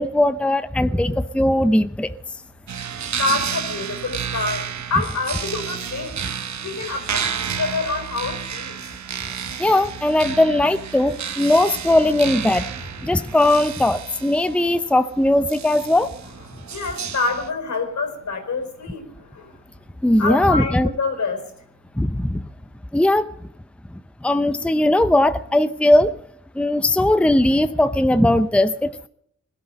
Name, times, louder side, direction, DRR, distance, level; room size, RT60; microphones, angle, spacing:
voice 1, 0.0-2.1 9.6-12.7 13.0-16.1 20.0-20.9 22.0-22.4 22.9-23.3 24.2-26.2 26.5-29.1, left 1 dB, 5° left, 11 dB, 0.7 m, -19 dB
sound 1, 2.7-17.5, right 7 dB, 75° right, 1.1 m, -31 dB
voice 2, 3.1-4.6 4.9-6.2 6.6-8.8 16.5-19.6 20.2-21.5, left 3 dB, 75° left, 6 dB, 4.6 m, -27 dB
21.0 x 13.0 x 5.2 m, 0.68 s
wide cardioid pair, 85°, 29 cm